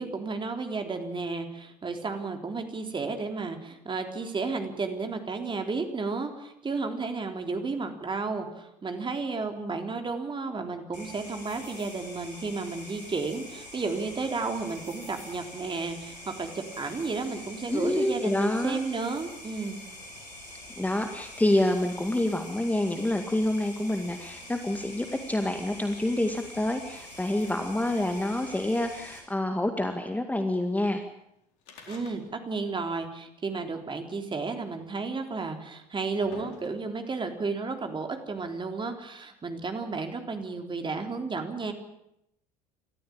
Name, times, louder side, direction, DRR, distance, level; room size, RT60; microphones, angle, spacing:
voice 1, 0.0-19.8 31.9-41.7, right 4 dB, 25° right, 5 dB, 3.7 m, -32 dB
sound 1, 10.9-29.2, left 1 dB, 80° left, 7.0 m, -45 dB
voice 2, 17.7-18.9 20.8-31.0, left 1 dB, 5° left, 6 dB, 2.1 m, -27 dB
sound 2, 31.6-32.6 32.9-33.0 34.0-34.1 35.0-35.1 35.7-37.1 37.9-38.0, left 5 dB, 60° left, 4.4 m, -49 dB
28.5 x 14.0 x 8.9 m, 0.81 s
figure-of-eight pair, 70°, 21 cm